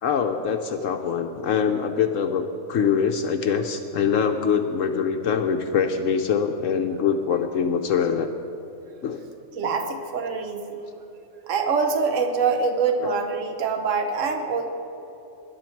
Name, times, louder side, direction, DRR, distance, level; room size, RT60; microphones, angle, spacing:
voice 1, 0.0-8.3 9.0-9.2 13.0-13.1, left 6 dB, 70° left, 5 dB, 1.0 m, -24 dB
voice 2, 9.6-10.8 11.5-14.7, right 5 dB, 65° right, 4 dB, 1.4 m, -24 dB
20.5 x 10.5 x 4.5 m, 3.0 s
omnidirectional pair, 1.5 m